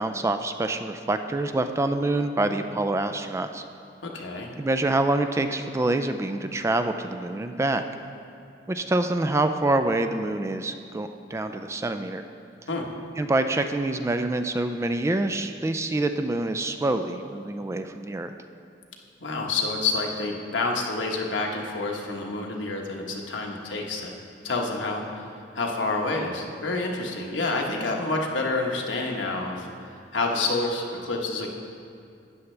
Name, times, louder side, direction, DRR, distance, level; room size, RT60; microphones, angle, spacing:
voice 1, 0.0-3.6 4.6-7.8 8.7-12.2 13.2-18.3, right 2 dB, 15° right, 8 dB, 0.3 m, -26 dB
voice 2, 4.0-4.5 12.7-12.9 19.2-24.1 24.4-25.3 25.5-29.7 30.1-31.5, left 3 dB, 75° left, 0 dB, 1.2 m, -28 dB
12.5 x 9.4 x 3.3 m, 2.4 s
head